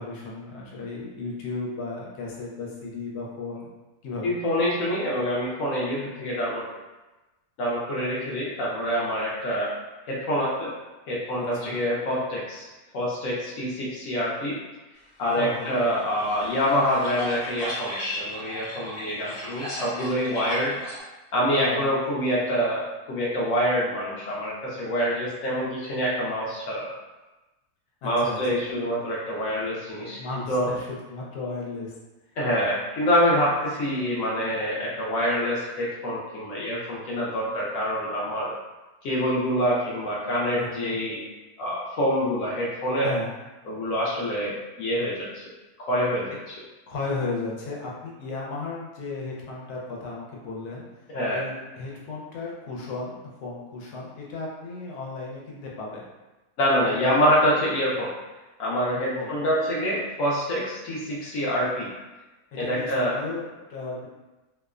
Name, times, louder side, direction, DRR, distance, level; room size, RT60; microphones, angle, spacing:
voice 1, 0.0-3.7 4.0-4.3 11.4-11.8 15.4-15.8 21.5-21.9 28.0-28.6 30.1-31.9 40.5-41.0 43.0-43.3 46.9-50.8 51.3-56.1 57.0-57.2 59.1-59.3 62.6-64.1, left 3 dB, 85° left, -3 dB, 1.1 m, -35 dB
voice 2, 4.2-6.7 7.6-9.7 10.1-10.7 11.1-12.7 12.9-14.6 15.2-20.8 21.3-26.9 28.0-30.2 30.5-30.7 32.4-38.5 39.0-41.2 41.6-43.1 43.6-45.4 45.9-46.6 51.1-51.4 56.6-58.1 58.6-61.9 62.6-63.2, equal, 70° left, -6 dB, 0.9 m, -26 dB
sound 1, 15.6-21.0, left 1 dB, 50° left, 1.1 m, -35 dB
2.8 x 2.0 x 2.3 m, 1.1 s
omnidirectional pair, 1.6 m